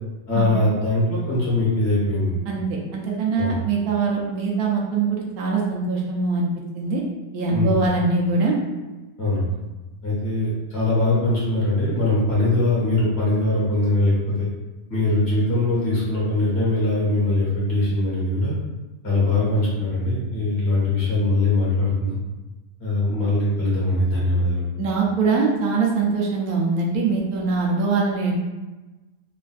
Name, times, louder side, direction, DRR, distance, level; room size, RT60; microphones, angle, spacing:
voice 1, 0.3-2.4 3.4-3.5 7.5-7.9 9.2-9.5 10.0-14.5 14.9-18.5 19.0-22.2 22.8-24.6, left 2 dB, 50° left, -7 dB, 1.2 m, -21 dB
voice 2, 2.5-6.5 6.7-7.0 7.3-8.6 24.8-28.3, right 4 dB, 80° right, -2 dB, 1.1 m, -22 dB
3.3 x 2.4 x 2.3 m, 1.1 s
omnidirectional pair, 1.6 m